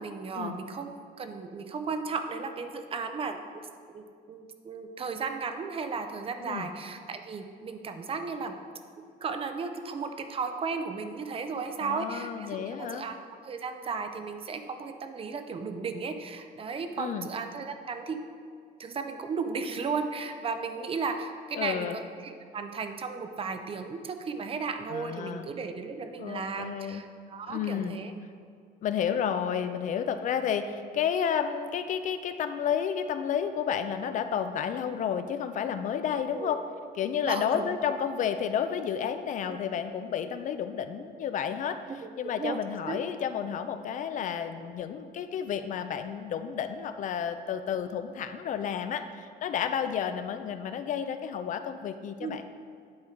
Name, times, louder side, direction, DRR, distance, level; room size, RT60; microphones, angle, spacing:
voice 1, 0.0-3.7 3.9-8.5 9.2-13.1 13.4-18.2 18.8-28.1 36.3-36.6 37.3-37.7 39.5-39.7 41.9-42.1 42.4-43.0 52.2-52.4, right 5 dB, 35° right, 7 dB, 0.5 m, -35 dB
voice 2, 11.8-13.0 17.0-17.3 21.6-22.0 24.9-25.5 26.2-27.0 27.5-28.0 28.8-36.6 37.0-41.8 42.2-52.4, left 8 dB, 50° left, 9 dB, 0.4 m, -31 dB
8.7 x 3.7 x 4.4 m, 2.1 s
cardioid pair, 110°, 17 cm